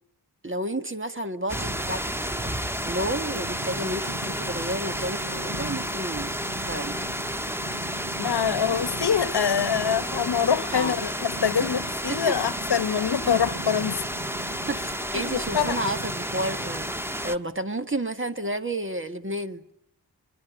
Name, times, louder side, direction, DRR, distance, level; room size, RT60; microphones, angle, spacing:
voice 1, 0.4-6.3 6.6-7.0 10.7-11.0 12.1-12.4 14.7-16.9 17.2-19.6, right 1 dB, 30° right, 1.8 m, -31 dB
sound 1, 1.5-17.4, equal, 5° right, 1.3 m, -31 dB
Purr, 2.5-17.3, right 1 dB, 70° right, 2.4 m, -41 dB
voice 2, 8.2-14.0 15.2-15.8, left 7 dB, 80° left, 1.0 m, -25 dB
24.5 x 22.5 x 9.3 m
wide cardioid pair, 80°, 39 cm